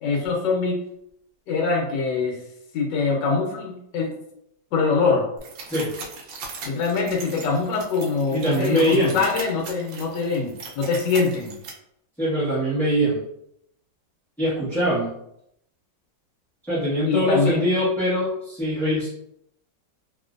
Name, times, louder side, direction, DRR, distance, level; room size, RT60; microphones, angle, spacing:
voice 1, 0.0-0.8 1.5-2.4 2.7-4.1 4.7-5.3 6.6-11.5 17.0-17.7, left 4 dB, 75° left, -1 dB, 1.4 m, -23 dB
sound 1, 5.4-11.7, right 4 dB, 75° right, 1.3 m, -39 dB
voice 2, 8.3-9.2 12.2-13.2 14.4-15.2 16.7-19.1, equal, ahead, -14 dB, 0.9 m, -23 dB
3.0 x 2.9 x 2.5 m, 0.77 s
omnidirectional pair, 2.0 m